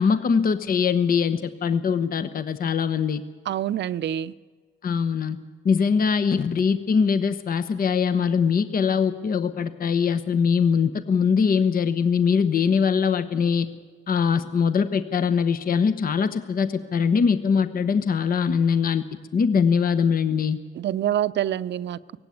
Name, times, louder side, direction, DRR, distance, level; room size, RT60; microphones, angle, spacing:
voice 1, 0.0-3.2 4.8-5.4 5.6-13.7 14.1-19.0 19.3-20.6, left 6 dB, 45° left, 11 dB, 1.0 m, -22 dB
voice 2, 3.5-4.3 20.8-22.0, right 11 dB, 65° right, 16 dB, 0.7 m, -26 dB
17.5 x 16.0 x 9.3 m, 1.5 s
cardioid pair, 90°, 20 cm